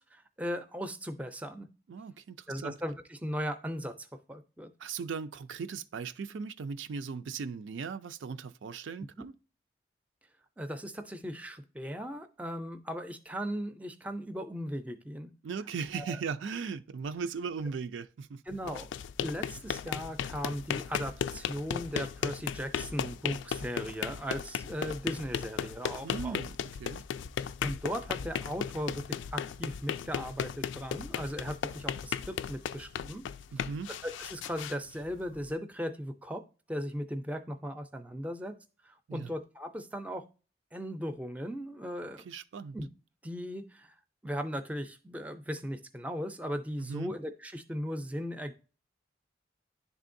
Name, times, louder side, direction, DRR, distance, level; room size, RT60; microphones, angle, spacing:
voice 1, 0.1-1.7 2.5-4.7 9.2-9.3 10.6-15.3 15.9-16.2 18.5-18.9 19.2-26.4 27.6-33.2 33.6-33.7 34.0-36.4 36.7-38.5 38.8-40.2 40.7-42.2 42.7-42.9 43.2-43.9 44.2-48.5, equal, 10° right, 0.4 m, -37 dB
voice 2, 1.9-2.7 4.8-9.3 15.4-18.4 26.0-27.0 33.5-33.9 39.1-39.3 42.2-42.8 46.8-47.1, right 5 dB, 85° right, 0.4 m, -38 dB
sound 1, 18.5-35.5, left 8 dB, 85° left, 0.3 m, -36 dB
10.5 x 3.6 x 2.6 m
head